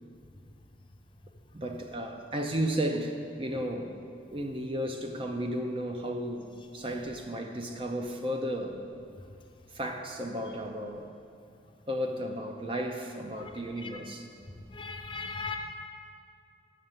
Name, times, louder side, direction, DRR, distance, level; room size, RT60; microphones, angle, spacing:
voice 1, 1.5-4.0 4.3-8.8 9.7-11.1 11.9-14.3, equal, 30° right, 4 dB, 0.6 m, -34 dB
voice 2, 14.7-15.6, left 4 dB, 25° left, 3 dB, 0.6 m, -37 dB
6.6 x 6.6 x 7.3 m, 2.5 s
head